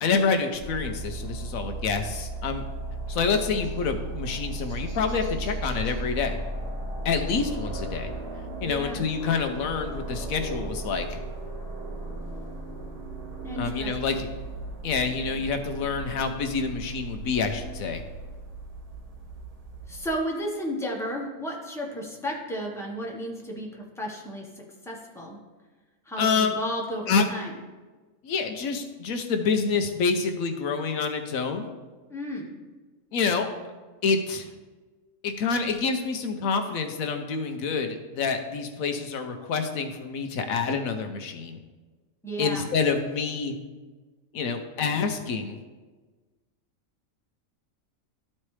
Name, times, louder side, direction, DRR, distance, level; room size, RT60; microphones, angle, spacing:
voice 1, 0.0-2.6 3.1-6.4 7.0-8.1 8.6-11.2 13.6-14.3 14.8-18.0 26.2-26.5 27.1-27.3 28.2-31.7 33.1-33.5 34.0-34.5 35.2-41.6 42.4-43.5 44.3-45.6, left 5 dB, 80° left, 6 dB, 1.2 m, -27 dB
sound 1, 0.5-20.2, right 2 dB, 30° right, 0.9 m, -36 dB
voice 2, 8.6-9.0 13.4-14.2 19.9-25.4 26.1-27.5 32.1-32.5 42.2-42.7, equal, ahead, -2 dB, 1.0 m, -33 dB
12.5 x 4.3 x 3.2 m, 1.3 s
omnidirectional pair, 1.4 m